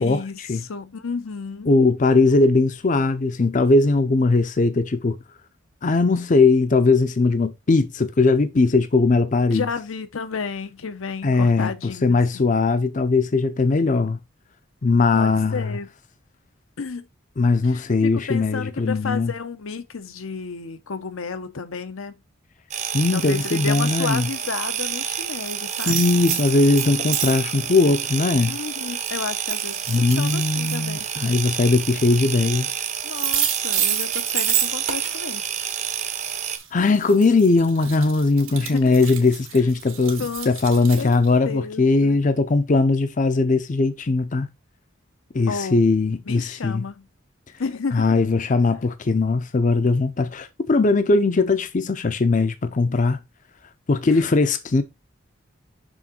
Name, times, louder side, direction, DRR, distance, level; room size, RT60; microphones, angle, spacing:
voice 1, 0.0-1.7 9.5-12.5 15.1-15.9 16.8-17.1 17.6-22.1 23.1-26.0 28.4-31.1 33.0-35.4 38.5-38.8 40.2-40.5 41.0-41.1 41.4-42.2 45.5-45.8 46.3-47.0 47.6-48.0, left 5 dB, 85° left, 0.7 m, -32 dB
voice 2, 1.7-5.2 5.8-9.7 11.2-14.2 14.8-15.8 17.4-19.3 22.9-24.3 25.9-28.6 29.9-32.7 36.7-44.5 45.3-46.8 47.9-53.2 53.9-54.8, left 3 dB, 40° left, 0.5 m, -19 dB
sound 1, 22.7-36.6, right 8 dB, 35° right, 0.7 m, -29 dB
sound 2, 25.0-25.1 25.4-27.5 28.0-28.1 29.0-29.2 29.5-30.8 32.8-32.9 33.1-41.3, right 10 dB, 85° right, 1.8 m, -29 dB
6.3 x 3.6 x 4.2 m
head